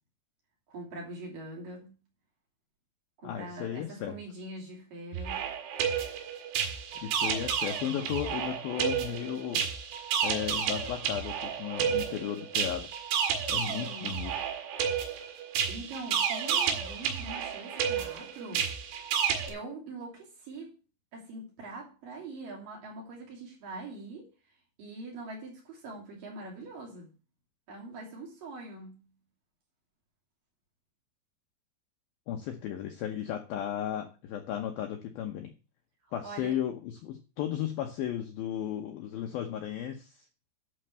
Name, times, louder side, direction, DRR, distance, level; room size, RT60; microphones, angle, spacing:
voice 1, 0.7-2.0 3.2-5.4 13.7-14.1 15.1-15.3 15.7-18.8 19.5-20.8 21.1-24.3 24.8-27.1 27.7-29.1 36.0-36.5, right 2 dB, 50° right, -2 dB, 4.4 m, -43 dB
voice 2, 3.2-4.2 7.0-9.7 10.2-12.9 13.5-14.3 32.3-35.5 36.1-40.3, left 10 dB, 75° left, 4 dB, 2.2 m, -35 dB
sound 1, 5.1-19.5, right 7 dB, 75° right, 3.7 m, -31 dB
11.0 x 4.3 x 8.0 m, 0.32 s
omnidirectional pair, 5.4 m